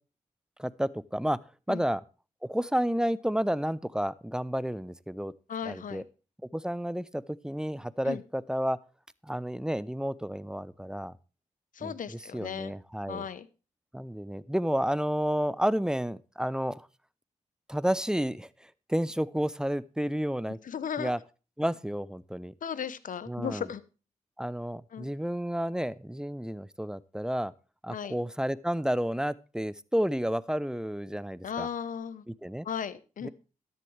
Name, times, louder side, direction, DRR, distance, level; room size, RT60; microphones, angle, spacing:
voice 1, 0.6-1.4 1.7-2.0 2.4-5.3 5.7-6.0 6.5-8.8 9.2-11.1 11.8-13.2 13.9-16.9 17.7-18.5 18.9-20.6 21.0-21.2 21.6-22.5 23.3-23.6 24.4-27.5 27.8-31.7 32.4-32.7 33.2-33.3, equal, 5° right, 19 dB, 0.7 m, -31 dB
voice 2, 5.5-6.1 8.0-8.2 11.7-12.7 13.1-13.5 20.6-21.1 22.6-23.8 24.9-25.1 27.9-28.2 31.4-32.2 32.6-33.3, left 7 dB, 60° left, 16 dB, 1.0 m, -36 dB
13.0 x 11.0 x 3.4 m, 0.34 s
supercardioid pair, 40°, 15 cm